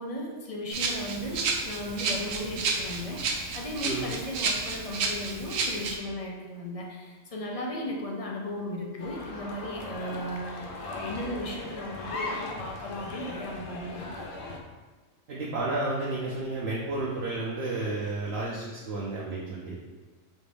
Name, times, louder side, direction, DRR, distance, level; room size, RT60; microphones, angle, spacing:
voice 1, 0.0-14.3 18.9-19.4, left 1 dB, 50° left, -1 dB, 0.4 m, -36 dB
Rattle (instrument), 0.7-6.0, right 4 dB, 85° right, 1.0 m, -31 dB
sound 1, 9.0-14.6, left 2 dB, 85° left, 1.0 m, -38 dB
voice 2, 15.3-19.8, right 2 dB, 60° right, -4 dB, 0.8 m, -32 dB
5.1 x 2.5 x 3.3 m, 1.3 s
omnidirectional pair, 1.3 m